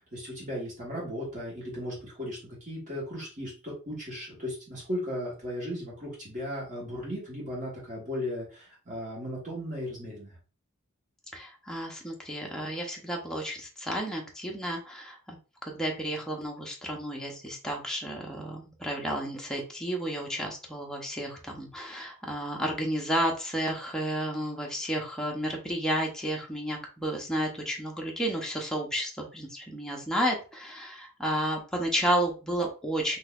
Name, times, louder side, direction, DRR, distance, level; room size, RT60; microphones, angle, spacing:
voice 1, 0.0-10.4, equal, 35° right, -5 dB, 1.5 m, -36 dB
voice 2, 11.3-15.4 15.6-33.2, right 1 dB, 5° left, -1 dB, 0.7 m, -32 dB
3.9 x 2.7 x 2.4 m, 0.34 s
head